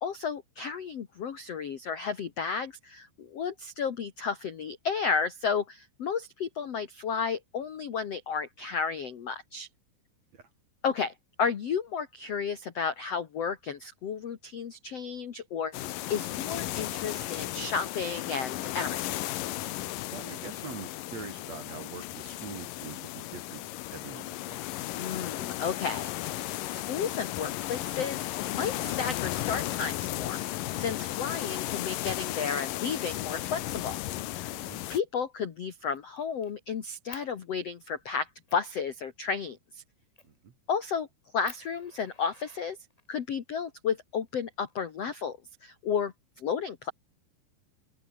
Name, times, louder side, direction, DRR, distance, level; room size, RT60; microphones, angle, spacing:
voice 1, 0.0-9.7 10.8-19.3 24.9-34.0 34.3-34.5 34.9-39.8 40.7-41.1 41.3-42.8 43.1-46.9, left 6 dB, 60° left, 1.7 m, -33 dB
sound 1, 15.7-35.0, left 16 dB, 85° left, 1.9 m, -35 dB
voice 2, 20.1-24.8 34.5-34.8 40.3-40.5, right 6 dB, 40° right, 3.2 m, -44 dB
Fire, 34.9-35.2 35.6-36.5 37.1-37.3 37.9-38.0 38.5-38.7 40.2-40.4 40.9-41.0 41.4-43.2 44.3-45.2, left 2 dB, 40° left, 0.5 m, -52 dB
omnidirectional pair, 5.2 m